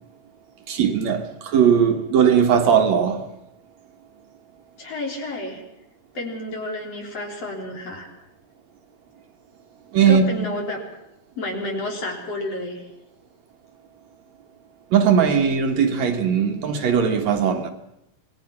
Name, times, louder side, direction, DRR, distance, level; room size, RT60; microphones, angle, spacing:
voice 1, 0.7-3.3 9.9-10.5 14.9-17.7, right 7 dB, 65° right, 2.6 m, -19 dB
voice 2, 4.8-5.6 6.1-8.1 10.1-10.8 11.3-12.9, left 1 dB, 50° left, 4.8 m, -30 dB
26.5 x 20.5 x 5.9 m
omnidirectional pair, 3.5 m